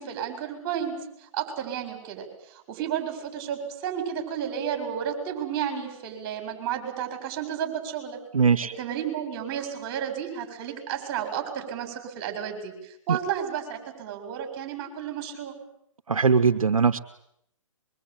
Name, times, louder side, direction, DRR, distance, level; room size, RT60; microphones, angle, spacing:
voice 1, 0.0-8.2 8.8-15.5, right 9 dB, 30° right, 6 dB, 7.5 m, -32 dB
voice 2, 8.3-8.7 13.1-13.2 16.1-17.0, right 5 dB, 85° right, 10 dB, 1.3 m, -20 dB
24.0 x 24.0 x 9.2 m, 0.73 s
hypercardioid pair, 140°, 17 cm